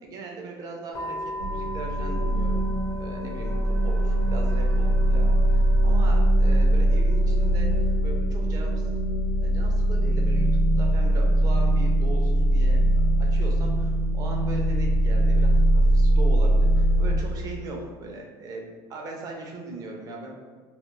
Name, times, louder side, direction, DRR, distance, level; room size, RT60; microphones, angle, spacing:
voice 1, 0.0-7.7 8.0-8.9 9.4-10.5 10.8-20.3, right 2 dB, 35° right, 1 dB, 0.5 m, -39 dB
sound 1, 0.9-7.9, left 1 dB, 35° left, 0.5 m, -40 dB
sound 2, 1.4-17.2, right 1 dB, 85° right, 0.6 m, -21 dB
2.4 x 2.2 x 3.1 m, 1.5 s
cardioid pair, 150°, 10 cm